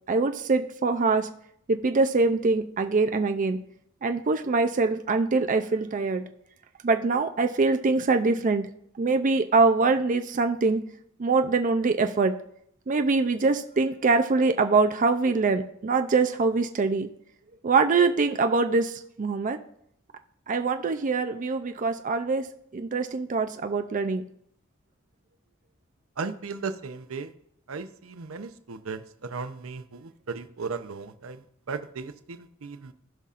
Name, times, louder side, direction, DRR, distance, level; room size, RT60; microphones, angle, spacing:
voice 1, 0.1-1.3 1.7-3.6 4.0-6.3 6.8-8.7 9.0-10.8 11.2-12.4 12.9-17.1 17.6-19.6 20.5-22.5 22.7-24.2, right 4 dB, 40° right, 7 dB, 0.4 m, -24 dB
voice 2, 26.2-27.3 27.7-31.4 31.7-32.9, right 4 dB, 80° right, 10 dB, 0.7 m, -36 dB
17.0 x 5.6 x 2.5 m, 0.70 s
head